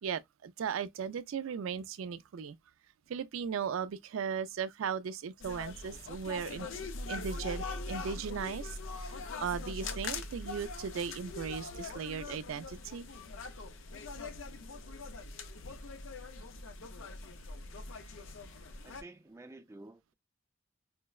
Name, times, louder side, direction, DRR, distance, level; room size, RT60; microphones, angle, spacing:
voice 1, 0.0-2.6 3.1-6.7 7.1-8.8 9.4-13.1, right 7 dB, 85° right, 0.4 m, -37 dB
sound 1, 5.4-19.0, left 3 dB, 75° left, 0.5 m, -42 dB
voice 2, 18.8-20.1, right 2 dB, 15° right, 0.3 m, -51 dB
4.4 x 2.0 x 2.3 m
head